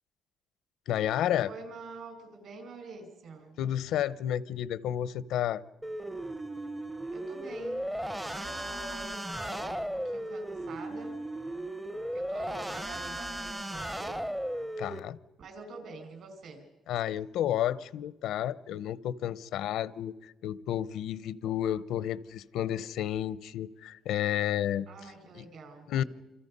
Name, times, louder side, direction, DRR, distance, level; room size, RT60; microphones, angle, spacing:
voice 1, 0.9-1.5 3.6-5.6 14.8-15.2 16.9-25.5 25.9-26.0, left 11 dB, 75° left, 17 dB, 0.8 m, -31 dB
voice 2, 1.4-3.6 7.1-11.1 12.1-14.3 15.4-16.7 24.9-26.1, right 3 dB, 55° right, 6 dB, 5.4 m, -46 dB
sound 1, 5.8-15.0, right 1 dB, 5° right, 0.7 m, -36 dB
28.5 x 27.0 x 5.5 m, 1.0 s
cardioid pair, 165°, 0 cm